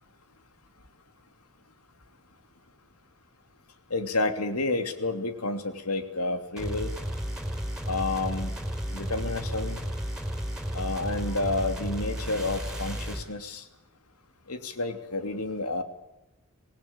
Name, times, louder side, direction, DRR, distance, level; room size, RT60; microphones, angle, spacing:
voice 1, 3.9-6.9 7.9-8.5 8.9-9.8 10.7-13.6 14.5-15.8, left 2 dB, 90° left, 7 dB, 2.9 m, -30 dB
sound 1, 6.6-13.3, equal, 5° right, 4.8 m, -33 dB
25.5 x 19.0 x 8.8 m, 0.94 s
head